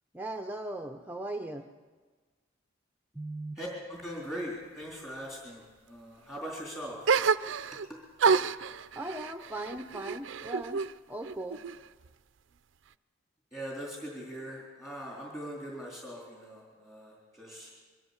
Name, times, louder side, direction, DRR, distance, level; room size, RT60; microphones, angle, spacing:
voice 1, 0.1-1.7 3.1-3.6 9.0-11.6, right 1 dB, 10° right, 4 dB, 0.7 m, -38 dB
voice 2, 3.6-7.0 13.5-17.7, equal, 15° left, -3 dB, 3.7 m, -41 dB
sound 1, 7.0-7.9 8.2-10.9 11.2-12.1, right 5 dB, 70° right, 0.5 m, -29 dB
22.5 x 14.0 x 8.2 m, 1.4 s
head